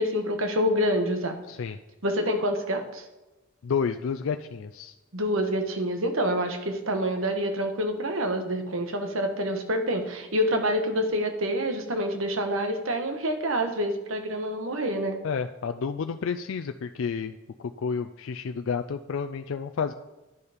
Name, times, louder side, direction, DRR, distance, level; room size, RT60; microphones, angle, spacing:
voice 1, 0.0-1.4 2.0-3.0 5.1-15.2, equal, 75° right, 5 dB, 1.3 m, -27 dB
voice 2, 3.6-4.9 15.2-17.3 17.6-19.9, left 6 dB, 65° left, 7 dB, 0.4 m, -30 dB
11.0 x 7.1 x 5.0 m, 1.1 s
head